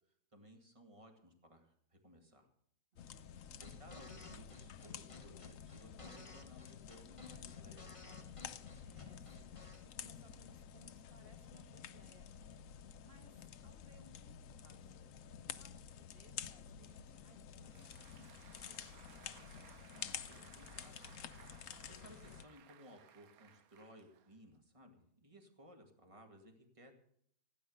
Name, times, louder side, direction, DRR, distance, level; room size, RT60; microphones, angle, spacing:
voice 1, 0.3-2.5 3.6-8.2 19.9-21.0 21.9-26.9, equal, 20° right, 3 dB, 2.1 m, -60 dB
voice 2, 2.9-3.6 8.8-12.8 13.0-15.0 15.4-18.8, right 4 dB, 40° right, 6 dB, 1.7 m, -67 dB
sound 1, 3.0-22.5, left 8 dB, 70° left, 1.0 m, -51 dB
sound 2, 3.3-9.8, left 3 dB, 25° left, 1.1 m, -56 dB
Applause, 17.4-24.6, right 9 dB, 80° right, 1.2 m, -62 dB
16.5 x 9.7 x 6.5 m, 0.67 s
omnidirectional pair, 1.5 m